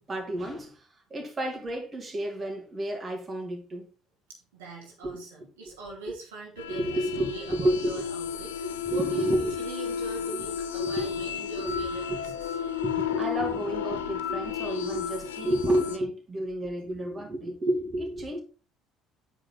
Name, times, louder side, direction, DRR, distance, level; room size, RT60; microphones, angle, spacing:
voice 1, 0.0-3.9 5.0-5.2 6.7-7.9 8.6-9.6 10.3-10.5 10.8-11.1 11.6-11.8 12.1-12.2 12.8-18.4, right 1 dB, 30° right, 2.8 m, -30 dB
voice 2, 4.3-12.5, right 3 dB, 80° right, 2.4 m, -42 dB
sound 1, 6.6-16.0, left 8 dB, 85° left, 0.7 m, -33 dB
8.9 x 5.2 x 4.0 m
hypercardioid pair, 60°, 0 cm